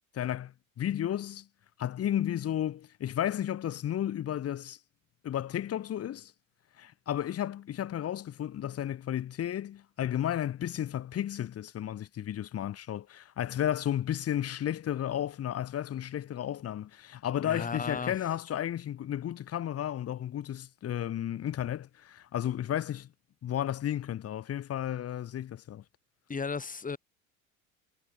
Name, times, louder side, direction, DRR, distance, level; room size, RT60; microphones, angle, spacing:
voice 1, 0.1-1.5 1.8-4.8 5.2-6.3 6.8-23.1 23.4-25.8, left 11 dB, 35° left, 1.6 m, -33 dB
voice 2, 17.4-18.3 26.3-27.0, left 5 dB, 20° left, 2.7 m, -35 dB
figure-of-eight pair, 70°, 41 cm